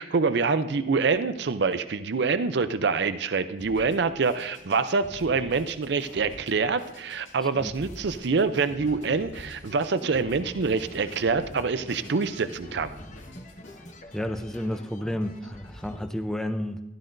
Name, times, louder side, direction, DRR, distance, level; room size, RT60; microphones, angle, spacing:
voice 1, 0.0-12.9, right 4 dB, 65° right, 11 dB, 0.5 m, -26 dB
Drum kit, 3.6-13.8, left 1 dB, 85° left, 2.2 m, -47 dB
sound 1, 7.5-8.2 8.8-16.1, left 1 dB, 40° left, 1.1 m, -46 dB
voice 2, 14.1-16.8, left 1 dB, 5° left, 7 dB, 0.5 m, -31 dB
15.5 x 12.0 x 2.6 m, 1.0 s
head